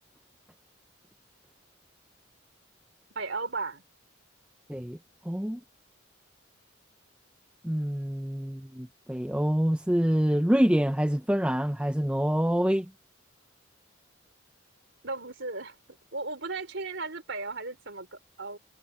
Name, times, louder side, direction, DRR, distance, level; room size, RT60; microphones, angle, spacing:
voice 1, 3.1-3.8 15.0-15.8 16.1-18.6, right 3 dB, 65° right, 4.1 m, -35 dB
voice 2, 5.3-5.6 7.6-12.9, equal, 5° right, 0.6 m, -26 dB
head